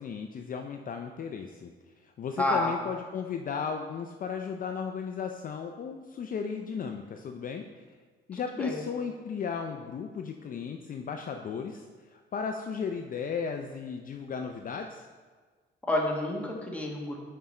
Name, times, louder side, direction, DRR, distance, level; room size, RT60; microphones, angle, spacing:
voice 1, 0.0-1.7 2.0-7.8 8.3-15.1, left 6 dB, 45° left, 4 dB, 0.4 m, -35 dB
voice 2, 2.4-2.7 8.6-8.8 15.9-17.2, left 1 dB, 5° left, -1 dB, 1.3 m, -29 dB
5.9 x 5.5 x 4.3 m, 1.5 s
cardioid pair, 90°, 20 cm